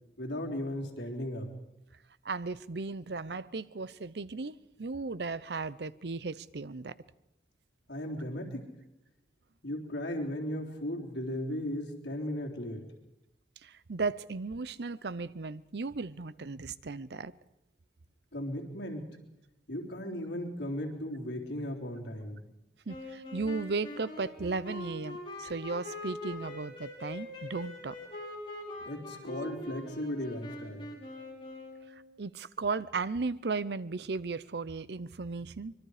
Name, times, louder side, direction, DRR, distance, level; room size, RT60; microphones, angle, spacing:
voice 1, 0.2-1.5 7.9-8.6 9.6-12.8 18.3-19.1 19.7-22.4 28.8-30.9, left 1 dB, 85° left, 3.7 m, -36 dB
voice 2, 2.2-6.9 13.6-17.3 22.9-28.0 32.2-35.7, right 4 dB, 70° right, 0.7 m, -36 dB
sound 1, 22.9-32.0, left 1 dB, 30° left, 6.1 m, -43 dB
25.0 x 22.5 x 5.0 m
head